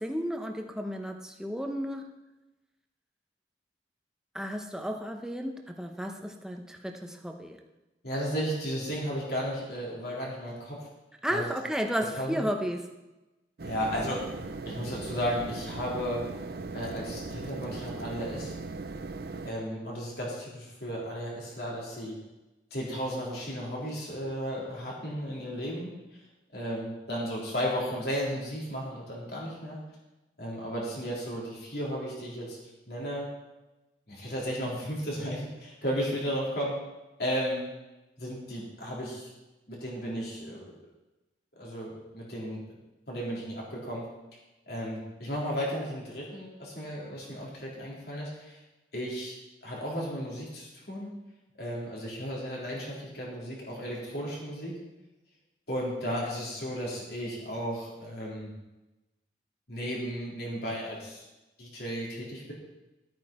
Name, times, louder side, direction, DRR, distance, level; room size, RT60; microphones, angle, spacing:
voice 1, 0.0-2.1 4.3-7.6 11.2-12.9, equal, 5° right, 3 dB, 0.9 m, -33 dB
voice 2, 8.0-10.9 11.3-11.5 12.2-12.4 13.6-14.2 14.7-16.2 16.7-18.5 19.4-22.2 22.7-25.9 26.5-29.8 30.4-32.6 32.9-33.3 34.1-36.7 37.2-37.6 38.2-39.3 39.7-40.8 41.6-42.6 43.1-44.1 44.7-48.6 48.9-49.3 49.6-51.1 51.6-54.8 55.7-58.5 59.7-61.3 61.6-62.5, equal, 60° left, -4 dB, 3.8 m, -34 dB
sound 1, 13.6-19.5, right 3 dB, 60° right, 0.6 m, -39 dB
13.0 x 9.1 x 4.4 m, 1.0 s
head